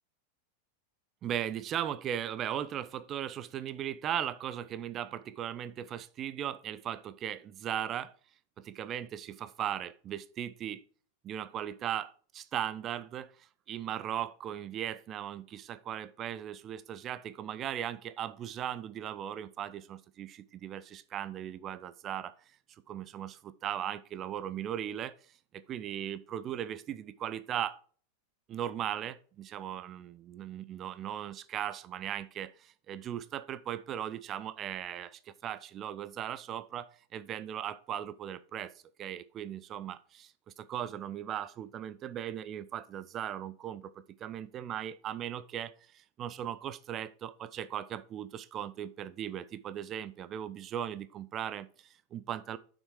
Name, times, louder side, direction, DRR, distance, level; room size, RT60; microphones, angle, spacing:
voice 1, 1.2-8.1 8.6-10.8 11.2-22.3 22.9-25.1 25.7-27.8 28.5-38.7 39.0-40.3 40.6-52.6, right 10 dB, 30° right, 0.4 m, -38 dB
6.2 x 6.2 x 4.8 m
figure-of-eight pair, 90°, 0 cm